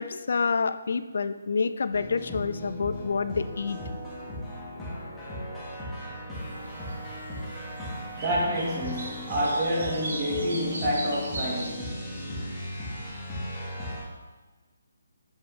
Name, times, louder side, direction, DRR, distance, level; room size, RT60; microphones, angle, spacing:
voice 1, 0.0-3.8, left 5 dB, 65° left, 0.3 m, -28 dB
sound 1, 1.9-14.0, equal, 5° left, 1.3 m, -37 dB
sound 2, 6.3-11.7, right 1 dB, 85° right, 1.7 m, -40 dB
voice 2, 8.2-12.0, equal, 25° right, 1.4 m, -28 dB
7.3 x 4.7 x 3.1 m
hypercardioid pair, 165°, 0 cm